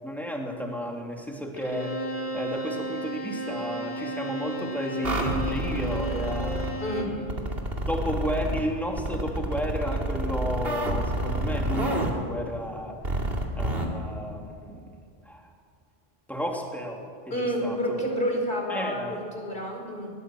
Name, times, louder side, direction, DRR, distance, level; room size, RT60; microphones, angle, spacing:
voice 1, 0.0-2.0 2.3-6.6 7.0-7.3 7.9-13.0 13.5-15.0 15.3-15.5 16.3-17.0 17.4-18.0 18.7-19.1, equal, ahead, 0 dB, 2.9 m, -32 dB
Bowed string instrument, 1.6-7.2, right 2 dB, 80° right, 2.7 m, -34 dB
sound 1, 5.0-6.7 7.3-8.6 9.0-12.1 13.0-13.9, right 1 dB, 65° right, 2.8 m, -28 dB
voice 2, 6.8-7.1 17.3-20.1, equal, 55° left, 1 dB, 4.8 m, -29 dB
21.5 x 18.5 x 7.8 m, 2.4 s
omnidirectional pair, 1.1 m